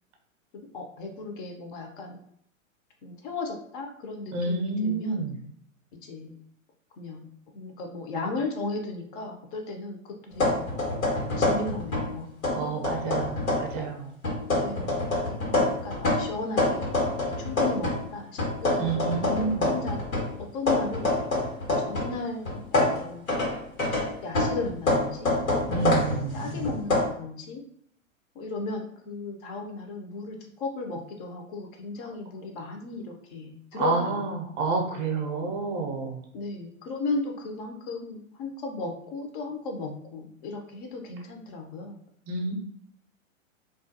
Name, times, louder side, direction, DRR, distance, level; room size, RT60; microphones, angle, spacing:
voice 1, 0.5-2.2 3.0-5.2 6.0-6.3 7.0-7.2 7.5-10.7 11.4-12.8 14.6-15.0 15.3-17.0 17.3-21.1 21.7-23.2 24.0-26.0 26.3-27.6 28.3-34.3 36.3-42.0, left 3 dB, 40° left, 3 dB, 0.6 m, -36 dB
voice 2, 4.3-5.3 12.5-14.1 18.8-19.7 25.7-26.4 33.8-36.2 42.3-42.5, right 4 dB, 30° right, 1 dB, 0.5 m, -29 dB
sound 1, 10.3-12.1 12.4-13.8 14.2-18.0 18.4-22.2 22.5-27.1, left 2 dB, 85° left, 1.2 m, -26 dB
2.4 x 2.2 x 2.6 m, 0.67 s
hypercardioid pair, 115°, 41 cm